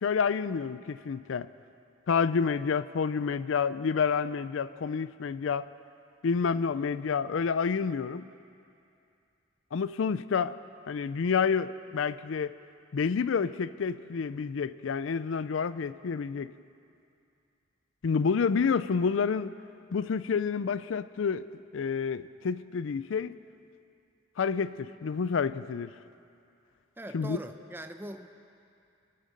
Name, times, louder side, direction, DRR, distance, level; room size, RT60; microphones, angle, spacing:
voice 1, 0.0-1.5 2.1-5.7 6.2-8.2 9.7-10.6 10.9-12.6 12.9-16.5 18.0-19.5 19.9-21.5 21.7-23.4 24.4-25.9 27.1-27.4, left 5 dB, 85° left, 15 dB, 0.4 m, -29 dB
voice 2, 27.0-28.3, right 1 dB, 10° right, 7 dB, 0.6 m, -41 dB
28.0 x 9.4 x 5.4 m, 2.6 s
head